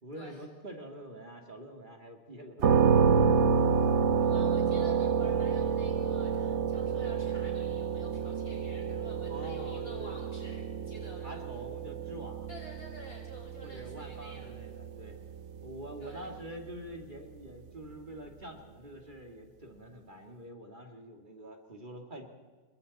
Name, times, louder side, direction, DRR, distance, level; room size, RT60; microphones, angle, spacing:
voice 1, 0.0-2.8 3.0-3.1 9.3-10.1 11.2-12.5 13.6-15.2 15.6-22.3, equal, 45° right, 2 dB, 2.4 m, -46 dB
sound 1, 2.6-16.4, right 6 dB, 75° right, 1.3 m, -29 dB
voice 2, 4.2-11.4 12.5-14.6 16.0-16.3, left 1 dB, 55° left, -3 dB, 7.3 m, -50 dB
28.0 x 22.5 x 4.1 m, 1.4 s
omnidirectional pair, 1.2 m